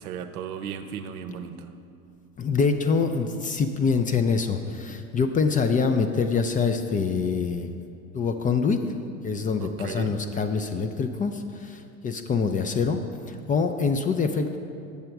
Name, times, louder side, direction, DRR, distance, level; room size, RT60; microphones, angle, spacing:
voice 1, 0.0-1.7 9.6-10.2, right 7 dB, 85° right, 8 dB, 0.7 m, -35 dB
voice 2, 2.4-7.7 8.1-8.8 9.2-13.0 13.3-14.6, left 5 dB, 20° left, 7 dB, 0.3 m, -25 dB
7.6 x 6.9 x 4.6 m, 2.5 s
hypercardioid pair, 80°, 42 cm